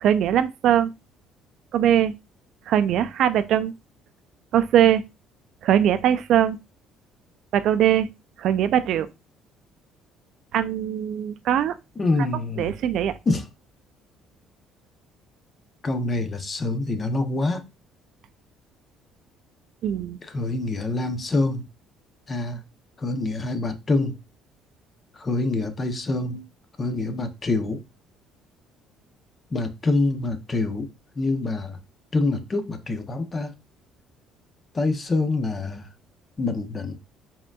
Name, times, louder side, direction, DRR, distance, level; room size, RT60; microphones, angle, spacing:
voice 1, 0.0-0.9 1.7-2.1 2.7-3.7 4.5-5.0 5.6-6.6 7.5-8.1 8.4-9.1 10.5-11.8 12.6-13.2 19.8-20.2, right 10 dB, 65° right, 0.4 m, -21 dB
voice 2, 12.0-12.7 13.3-13.4 15.8-17.6 20.2-21.6 22.3-22.6 23.0-24.2 25.2-26.4 26.8-27.8 29.5-30.9 31.2-31.8 32.1-33.5 34.7-35.9 36.4-36.9, left 2 dB, 25° left, 0.7 m, -25 dB
4.9 x 3.6 x 2.3 m
cardioid pair, 115°, 0 cm